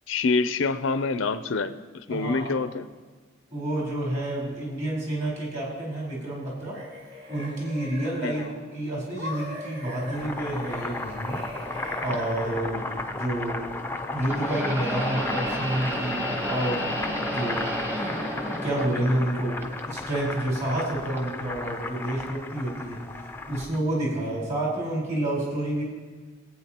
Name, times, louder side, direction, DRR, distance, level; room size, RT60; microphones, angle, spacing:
voice 1, 0.1-1.8 2.1-2.9 8.2-8.5, left 4 dB, 75° left, 12 dB, 0.5 m, -26 dB
voice 2, 2.1-2.6 3.5-6.8 7.3-11.4 12.0-12.9 13.2-13.7 14.1-16.8 17.3-17.7 18.6-23.0 23.5-25.8, right 1 dB, 40° right, -4 dB, 4.2 m, -29 dB
sound 1, 6.4-8.7 9.2-13.0, left 1 dB, 65° right, 2.7 m, -40 dB
Boiling, 10.0-23.8, left 2 dB, 10° left, 0.5 m, -35 dB
sound 2, 12.1-12.2 14.2-19.3 19.6-20.4 21.2-21.3 22.3-22.4, equal, 10° right, 1.1 m, -31 dB
22.0 x 8.7 x 2.9 m, 1.4 s
head